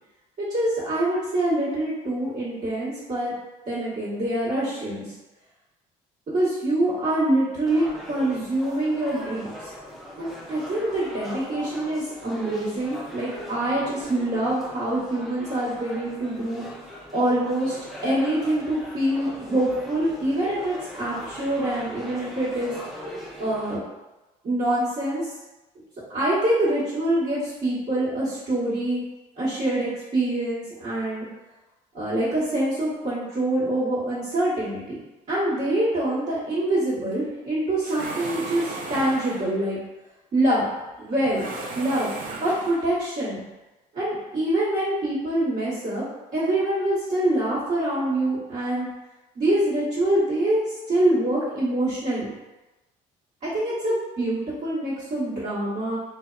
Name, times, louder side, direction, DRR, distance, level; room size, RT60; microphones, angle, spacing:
voice 1, 0.4-3.4 3.7-5.0 6.3-9.7 10.2-16.6 17.1-17.7 18.0-22.7 23.4-23.8 24.4-25.3 26.1-29.0 29.4-31.3 31.9-35.0 35.3-39.8 40.3-40.6 41.0-41.4 41.7-42.1 42.4-43.4 43.9-46.0 46.3-48.9 49.3-52.3 53.4-56.0, right 1 dB, 50° right, -13 dB, 1.1 m, -25 dB
sound 1, 7.7-23.8, left 1 dB, ahead, 0.4 m, -40 dB
sound 2, 37.8-39.7 41.2-43.0, right 3 dB, 65° right, 0.4 m, -35 dB
2.7 x 2.0 x 2.3 m, 1.1 s
cardioid pair, 100°, 15 cm